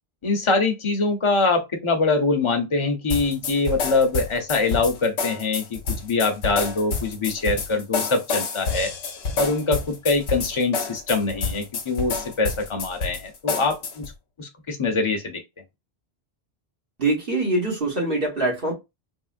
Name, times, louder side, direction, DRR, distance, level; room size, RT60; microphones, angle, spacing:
voice 1, 0.2-8.9 9.4-14.0 14.4-15.4, left 3 dB, 30° left, 0.7 m, -23 dB
sound 1, 3.1-14.1, left 5 dB, 80° left, 1.0 m, -29 dB
voice 2, 17.0-18.7, right 2 dB, 60° right, 1.6 m, -23 dB
3.6 x 2.1 x 2.4 m
omnidirectional pair, 1.1 m